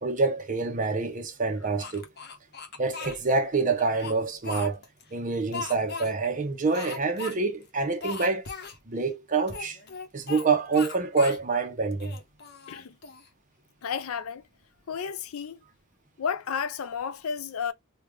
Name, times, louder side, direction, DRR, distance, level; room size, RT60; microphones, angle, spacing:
voice 1, 0.0-2.1 2.8-4.8 5.1-8.4 8.9-9.8 10.1-12.2, right 4 dB, 40° right, 0.8 m, -26 dB
Speech, 1.8-3.2 3.8-5.0 5.5-6.1 6.7-7.4 7.6-7.7 8.0-8.8 9.5-10.5 10.7-11.4 11.9-13.3, left 5 dB, 50° left, 0.9 m, -38 dB
voice 2, 13.8-14.4 14.9-15.6 16.2-17.7, left 6 dB, 85° left, 0.4 m, -32 dB
3.3 x 2.3 x 3.1 m
head